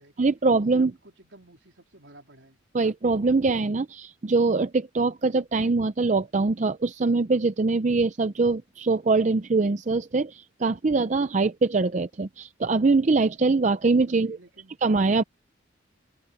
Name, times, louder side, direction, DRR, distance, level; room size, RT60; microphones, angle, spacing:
voice 1, 0.2-0.9 2.7-14.4 14.8-15.2, right 3 dB, 40° right, 0.5 m, -23 dB
voice 2, 0.8-2.6 14.1-14.7, right 1 dB, 75° right, 3.8 m, -52 dB
open air
head